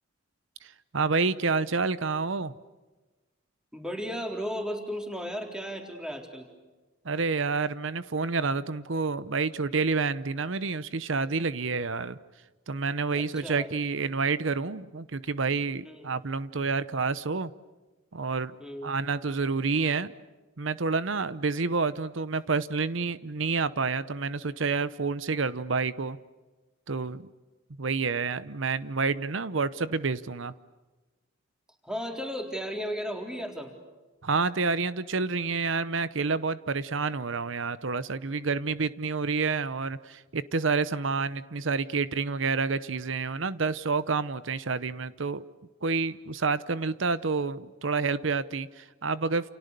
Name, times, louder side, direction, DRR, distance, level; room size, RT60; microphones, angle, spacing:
voice 1, 0.6-2.5 7.0-12.2 12.7-17.5 18.1-18.6 18.8-20.1 20.6-26.2 26.9-27.3 27.8-30.5 34.2-45.4 45.8-49.5, right 4 dB, 70° right, 15 dB, 0.8 m, -29 dB
voice 2, 3.7-6.5 13.1-13.7 15.8-16.1 18.6-18.9 31.8-33.7, equal, 5° right, 2 dB, 4.0 m, -35 dB
30.0 x 29.0 x 6.8 m, 1.2 s
head